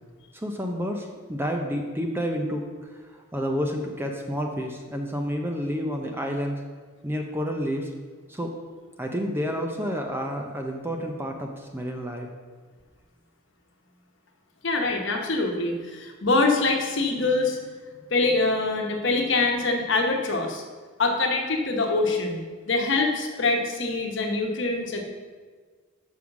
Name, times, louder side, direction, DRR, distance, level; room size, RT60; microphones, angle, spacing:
voice 1, 0.3-2.7 3.1-6.6 7.0-7.9 8.3-8.5 9.0-12.3, equal, 10° right, 3 dB, 0.5 m, -29 dB
voice 2, 14.6-17.6 18.1-20.6 21.0-25.0, left 3 dB, 55° left, 2 dB, 1.1 m, -24 dB
6.3 x 5.5 x 5.9 m, 1.5 s
head